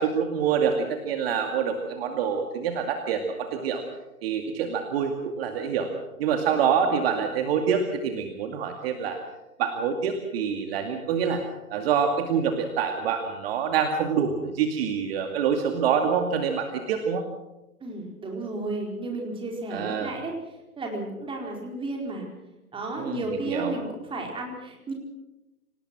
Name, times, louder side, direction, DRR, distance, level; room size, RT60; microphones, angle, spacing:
voice 1, 0.0-3.8 4.2-5.9 6.2-9.2 9.6-11.4 11.7-17.3 19.7-20.1 23.0-23.8, right 7 dB, 40° right, 5 dB, 2.4 m, -26 dB
voice 2, 17.8-20.3 20.8-22.2 22.7-24.9, right 2 dB, 10° right, 1 dB, 4.7 m, -33 dB
26.5 x 18.5 x 6.2 m, 0.98 s
figure-of-eight pair, 130°, 44 cm